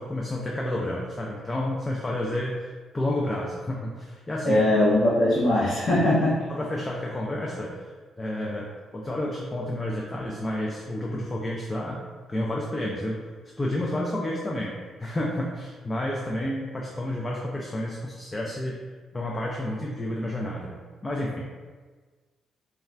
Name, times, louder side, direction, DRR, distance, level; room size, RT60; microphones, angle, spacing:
voice 1, 0.0-4.6 6.5-7.9 8.2-12.0 12.3-13.2 13.6-14.7 15.0-18.8 19.1-21.5, left 1 dB, 20° left, -3 dB, 0.3 m, -30 dB
voice 2, 4.4-6.3, left 1 dB, 60° left, -12 dB, 0.8 m, -21 dB
2.4 x 2.2 x 3.2 m, 1.4 s
cardioid pair, 110°, 0 cm